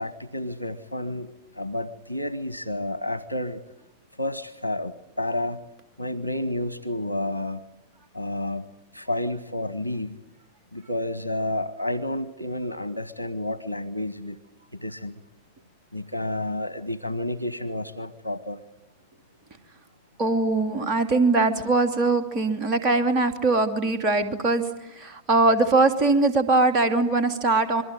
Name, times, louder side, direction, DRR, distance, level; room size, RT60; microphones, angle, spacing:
voice 1, 0.0-3.6 4.2-5.6 6.0-7.6 8.1-8.7 8.9-10.2 10.7-14.4 14.8-15.2 15.9-18.6, left 1 dB, 90° right, 16 dB, 1.0 m, -30 dB
voice 2, 20.2-24.6 25.0-27.8, right 3 dB, 35° right, 7 dB, 2.8 m, -21 dB
27.0 x 22.5 x 9.1 m, 0.88 s
figure-of-eight pair, 90°, 0 cm